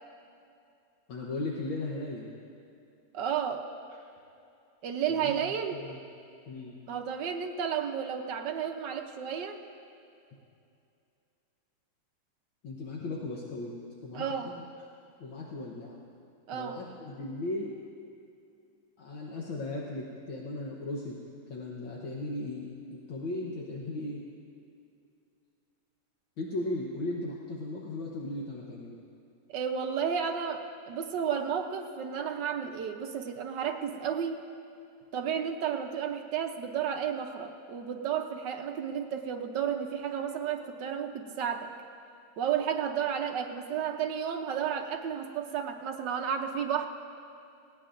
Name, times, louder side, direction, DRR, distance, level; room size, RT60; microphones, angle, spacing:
voice 1, 1.1-2.3 5.1-5.3 5.8-6.0 6.5-6.8 12.6-13.7 14.0-14.6 15.2-16.0 16.5-17.8 19.0-21.2 21.5-22.7 23.1-24.3 26.4-29.0, left 2 dB, 70° left, -3 dB, 1.8 m, -36 dB
voice 2, 3.1-3.7 4.8-5.8 6.9-9.6 14.1-14.6 16.5-16.8 29.5-34.4 35.1-41.7 42.4-46.9, right 8 dB, 65° right, 4 dB, 1.3 m, -32 dB
19.5 x 17.0 x 2.6 m, 2.5 s
omnidirectional pair, 2.3 m